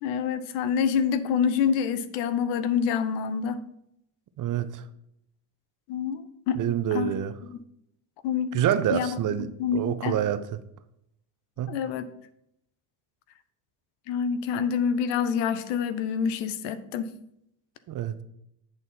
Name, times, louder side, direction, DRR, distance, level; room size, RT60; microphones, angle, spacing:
voice 1, 0.0-3.6 5.9-6.6 6.9-7.1 8.2-8.5 8.9-9.1 9.4-10.1 11.7-12.1 14.1-17.1, left 7 dB, 80° left, 0.8 m, -27 dB
voice 2, 4.4-4.8 6.6-7.3 8.5-10.6 11.6-11.7 17.9-18.2, right 10 dB, 45° right, 0.7 m, -27 dB
8.0 x 4.1 x 5.5 m
supercardioid pair, 90°, 43 cm